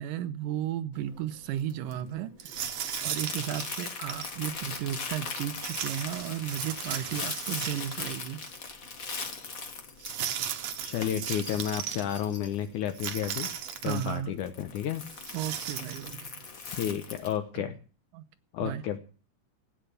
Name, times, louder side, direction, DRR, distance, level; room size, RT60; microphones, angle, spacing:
voice 1, 0.0-2.3 3.0-8.4 13.8-14.3 15.3-16.4 17.6-17.7 18.1-18.2 18.6-18.8, right 11 dB, 85° right, 2.5 m, -34 dB
Crumpling crinkling, 0.9-17.4, left 4 dB, 40° left, 1.3 m, -40 dB
sound 1, 2.4-4.3 5.6-8.2 8.5-8.6 10.0-12.0 12.9-14.2 15.1-16.1, right 9 dB, 65° right, 2.3 m, -36 dB
voice 2, 10.8-13.5 13.8-15.0 16.7-17.8 18.5-19.0, left 10 dB, 75° left, 2.3 m, -31 dB
15.0 x 9.0 x 6.7 m
omnidirectional pair, 3.7 m